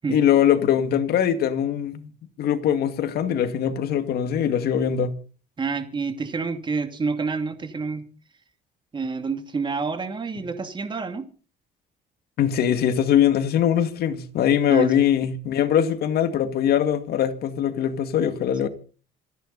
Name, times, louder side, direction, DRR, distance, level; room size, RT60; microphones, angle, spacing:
voice 1, 0.1-2.1 2.4-5.2 10.4-10.5 12.4-18.7, left 9 dB, 70° left, 2.2 m, -22 dB
voice 2, 5.6-8.0 8.9-11.3 14.7-14.9, right 4 dB, 30° right, 2.6 m, -28 dB
27.0 x 10.5 x 4.1 m
cardioid pair, 110°, 17 cm